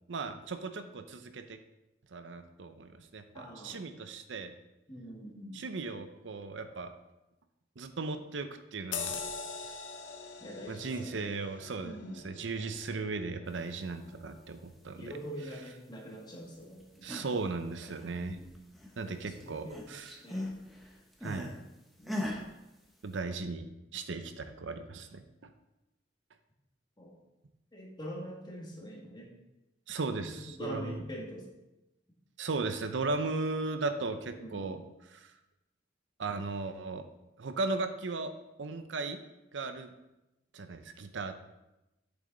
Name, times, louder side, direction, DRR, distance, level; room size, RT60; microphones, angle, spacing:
voice 1, 0.1-1.6 2.1-4.5 5.5-6.9 7.8-9.2 10.7-12.0 12.2-15.2 17.0-18.4 19.0-20.2 21.2-21.5 23.0-23.7 23.9-25.5 29.9-31.0 32.4-34.8 35.1-35.3 36.2-37.1 37.4-38.3 38.6-39.2 39.5-39.9 40.5-41.4, right 3 dB, 70° right, 9 dB, 0.6 m, -36 dB
voice 2, 3.3-3.8 4.9-5.6 10.4-11.3 11.8-12.3 15.0-17.1 18.1-18.5 19.4-19.9 20.2-20.5 22.0-22.3 27.0-27.1 27.7-29.3 30.2-31.5 34.4-34.8, equal, 25° left, -2 dB, 1.9 m, -44 dB
sound 1, 8.9-13.9 14.3-14.5, left 5 dB, 80° left, 0.8 m, -42 dB
sound 2, 16.8-17.4 17.7-19.1 19.4-21.6 22.1-22.5, left 1 dB, ahead, 1.1 m, -39 dB
8.6 x 7.0 x 3.9 m, 0.96 s
head